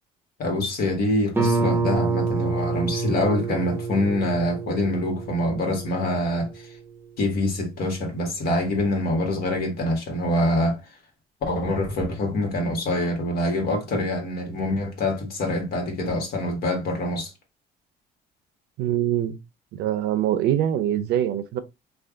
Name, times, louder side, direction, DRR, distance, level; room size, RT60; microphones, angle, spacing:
voice 1, 0.4-6.8 7.2-10.8 11.4-17.3, left 1 dB, 65° left, 1.6 m, -25 dB
Guitar, 1.3-6.8, right 4 dB, 15° right, 0.7 m, -27 dB
voice 2, 18.8-19.4 19.7-21.6, right 11 dB, 75° right, 0.6 m, -23 dB
3.4 x 2.4 x 3.7 m
cardioid pair, 110°, 17 cm